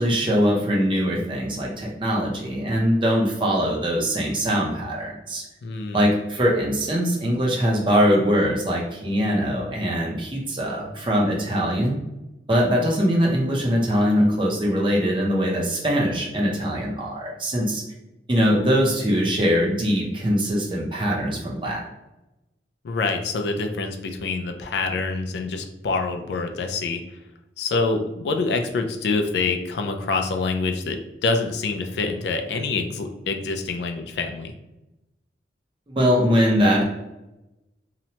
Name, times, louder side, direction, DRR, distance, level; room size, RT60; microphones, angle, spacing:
voice 1, 0.0-5.4 5.9-12.0 12.5-17.8 18.3-21.8 35.9-36.8, equal, 30° right, -2 dB, 0.6 m, -22 dB
voice 2, 5.6-6.1 22.8-27.0 27.6-34.5, left 3 dB, 75° left, 5 dB, 0.3 m, -26 dB
2.9 x 2.1 x 2.8 m, 0.97 s
head